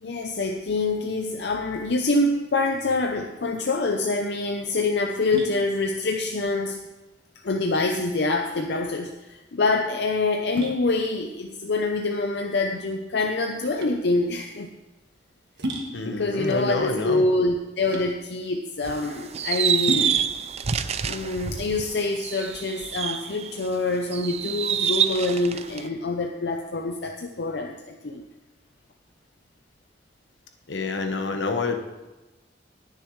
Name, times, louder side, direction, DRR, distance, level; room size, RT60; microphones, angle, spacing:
voice 1, 0.0-6.8 7.4-14.7 16.1-20.1 21.1-28.2, left 2 dB, 65° left, 3 dB, 0.6 m, -26 dB
sound 1, 3.7-22.3, right 1 dB, 70° right, 1.5 m, -38 dB
voice 2, 15.9-17.2 30.7-31.8, left 3 dB, 85° left, 5 dB, 1.1 m, -27 dB
sound 2, 18.8-23.7 24.1-25.9, right 8 dB, 35° right, 0.4 m, -27 dB
19.5 x 6.6 x 3.2 m, 1.1 s
head